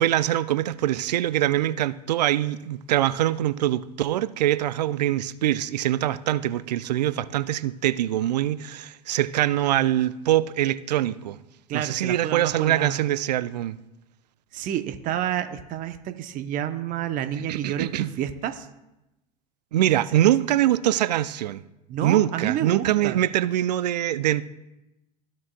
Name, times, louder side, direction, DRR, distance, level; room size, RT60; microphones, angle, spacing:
voice 1, 0.0-11.4 11.7-13.8 17.5-18.1 19.7-21.6 22.0-24.5, right 13 dB, 75° right, 0.4 m, -23 dB
voice 2, 11.7-13.1 14.5-18.7 21.9-23.2, right 10 dB, 40° right, 0.7 m, -29 dB
14.5 x 6.2 x 2.2 m
hypercardioid pair, 85°, 21 cm